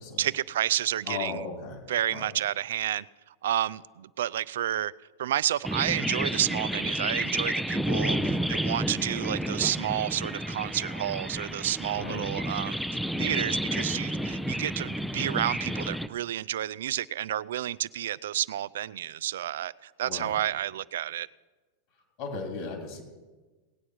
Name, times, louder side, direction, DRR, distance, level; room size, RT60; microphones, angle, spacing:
voice 1, 0.2-1.4 1.9-3.1 3.4-4.9 5.2-12.8 13.2-21.3, right 12 dB, 75° right, 0.3 m, -30 dB
voice 2, 1.1-1.8 2.1-2.3 8.0-8.4 11.9-12.3 20.0-20.3 22.2-23.0, left 4 dB, 55° left, 3.1 m, -37 dB
sound 1, 5.6-16.1, equal, ahead, 0.5 m, -31 dB
18.0 x 8.6 x 4.7 m
hypercardioid pair, 100°, 0 cm